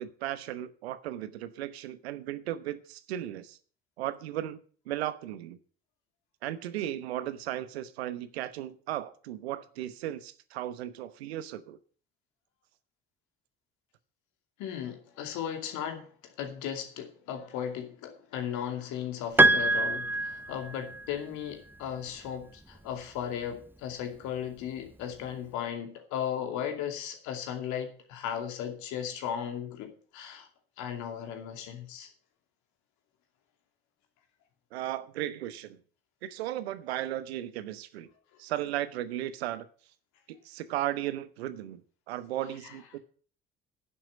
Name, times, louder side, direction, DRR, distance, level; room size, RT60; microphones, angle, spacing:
voice 1, 0.0-3.6 4.0-4.6 4.9-5.6 6.4-11.8 34.7-35.8 36.2-38.1 38.4-39.7 40.3-41.8 42.1-43.0, right 13 dB, 75° right, 1.0 m, -35 dB
voice 2, 14.6-30.5 30.8-32.1 42.6-42.7, left 9 dB, 65° left, 2.5 m, -36 dB
Piano, 19.4-21.1, right 2 dB, 5° right, 0.5 m, -24 dB
10.5 x 7.6 x 8.5 m
figure-of-eight pair, 55°, 31 cm